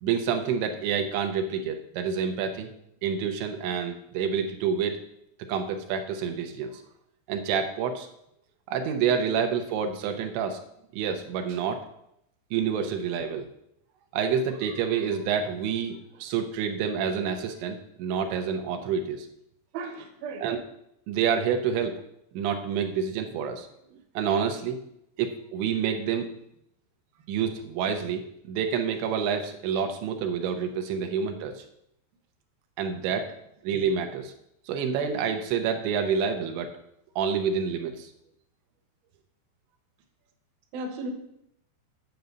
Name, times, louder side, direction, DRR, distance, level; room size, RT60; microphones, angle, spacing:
voice 1, 0.0-2.7 3.0-5.0 5.5-6.8 7.3-8.1 8.7-10.6 10.9-11.8 12.5-13.5 14.1-19.3 20.4-20.6 21.1-22.0 22.3-23.7 24.2-24.8 25.2-26.3 27.3-31.6 32.8-33.3 33.6-34.3 34.7-36.7 37.2-38.1, right 7 dB, 85° right, 5 dB, 3.2 m, -28 dB
voice 2, 19.7-20.5 40.7-41.1, right 2 dB, 65° right, 3 dB, 2.8 m, -35 dB
9.4 x 5.3 x 7.9 m, 0.77 s
omnidirectional pair, 5.1 m